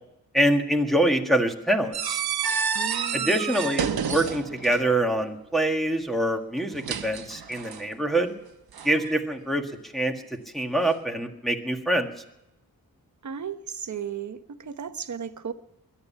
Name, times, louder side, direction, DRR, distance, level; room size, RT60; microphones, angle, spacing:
voice 1, 0.3-2.2 3.1-8.3 8.8-10.1 10.5-12.1, right 1 dB, ahead, 1.8 m, -25 dB
sound 1, 1.9-5.0 6.6-7.9 8.7-9.2, right 7 dB, 85° right, 1.0 m, -30 dB
voice 2, 2.7-3.4 13.2-15.5, right 7 dB, 50° right, 1.0 m, -35 dB
22.0 x 10.5 x 5.7 m
wide cardioid pair, 135°, 36 cm